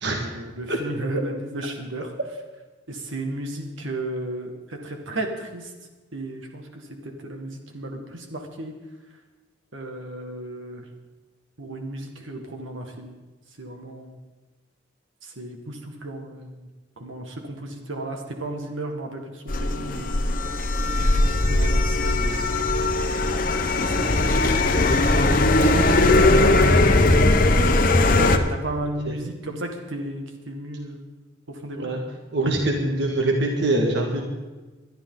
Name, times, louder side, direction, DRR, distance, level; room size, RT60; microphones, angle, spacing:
voice 1, 0.1-2.1 2.9-5.7 6.1-8.7 9.7-10.8 11.6-13.1 13.6-14.2 15.2-16.7 17.0-20.1 21.0-22.7 23.7-25.1 25.4-27.3 28.0-31.0 31.6-31.9, right 1 dB, 80° right, 3 dB, 2.0 m, -34 dB
sound 1, 19.5-28.4, left 2 dB, 45° left, 1.0 m, -19 dB
voice 2, 32.3-34.2, right 2 dB, 60° right, 2 dB, 1.7 m, -23 dB
21.5 x 11.5 x 4.0 m, 1.2 s
head